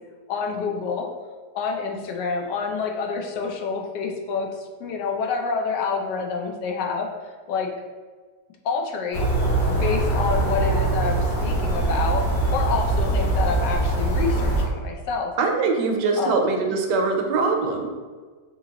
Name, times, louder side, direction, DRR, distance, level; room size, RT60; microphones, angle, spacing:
voice 1, 0.3-1.1 1.5-7.1 7.5-7.7 8.6-9.3 9.7-15.3 16.2-16.4, left 5 dB, 80° left, 2 dB, 1.2 m, -27 dB
sound 1, 9.1-14.6, right 2 dB, 50° left, 1.6 m, -22 dB
voice 2, 15.4-17.9, right 4 dB, 80° right, 3 dB, 1.2 m, -22 dB
5.2 x 2.9 x 2.8 m, 1.5 s
omnidirectional pair, 1.8 m